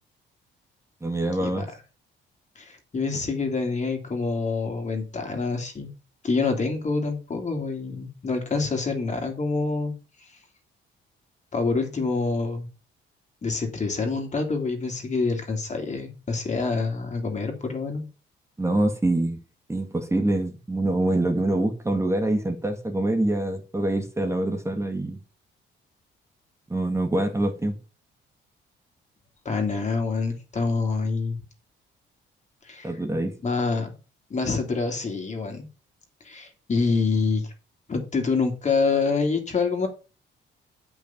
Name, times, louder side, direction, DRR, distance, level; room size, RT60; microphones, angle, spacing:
voice 1, 1.0-1.7 18.6-19.4 19.7-25.2 26.7-27.7 32.8-33.3, right 1 dB, 15° right, 2.0 m, -25 dB
voice 2, 2.5-5.9 6.2-9.9 11.5-12.7 13.4-18.1 29.4-31.4 32.6-32.9 33.4-33.9 34.3-35.7 36.2-37.5 37.9-39.9, left 4 dB, 35° left, 3.1 m, -26 dB
8.4 x 6.1 x 5.9 m
cardioid pair, 90°, 20 cm